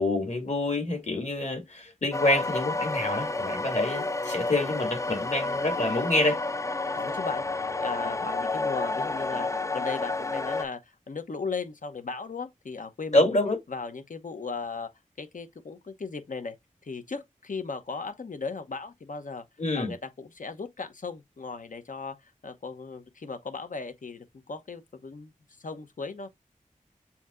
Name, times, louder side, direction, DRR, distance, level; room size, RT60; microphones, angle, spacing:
voice 1, 0.0-6.4 13.1-13.6 19.6-19.9, left 2 dB, 55° left, 2.2 m, -27 dB
sound 1, 2.1-10.6, left 3 dB, 20° left, 0.3 m, -30 dB
voice 2, 6.9-7.4 7.8-13.4 13.7-14.9 15.2-16.6 16.8-19.4 19.7-25.3 25.6-26.3, left 4 dB, 70° left, 0.9 m, -37 dB
7.0 x 2.8 x 2.5 m
wide cardioid pair, 65°, 14 cm